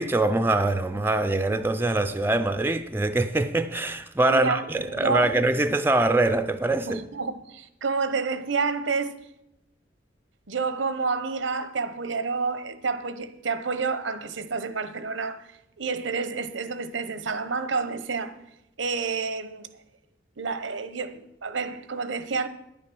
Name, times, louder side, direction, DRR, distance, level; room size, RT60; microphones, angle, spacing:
voice 1, 0.0-7.0, right 2 dB, 10° right, 0.4 m, -23 dB
voice 2, 4.3-5.3 6.9-9.2 10.5-15.5 15.8-18.4 18.8-19.7 20.4-22.5, right 4 dB, 85° right, 0.8 m, -29 dB
10.0 x 8.9 x 6.1 m
head